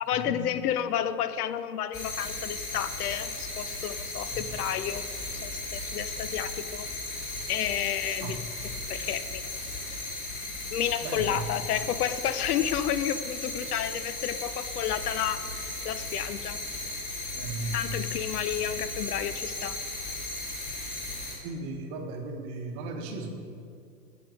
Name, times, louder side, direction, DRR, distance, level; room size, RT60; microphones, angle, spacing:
voice 1, 0.0-5.0 5.3-6.9 7.5-8.4 8.9-9.4 10.7-16.6 17.7-19.8, left 10 dB, 75° left, 13 dB, 0.6 m, -31 dB
sound 1, 1.9-21.4, left 2 dB, 15° left, 2.1 m, -36 dB
voice 2, 11.0-11.5 11.8-11.9 17.4-18.0 21.4-23.3, right 2 dB, 35° right, 4 dB, 1.0 m, -36 dB
7.0 x 6.9 x 4.7 m, 2.3 s
hypercardioid pair, 125°, 46 cm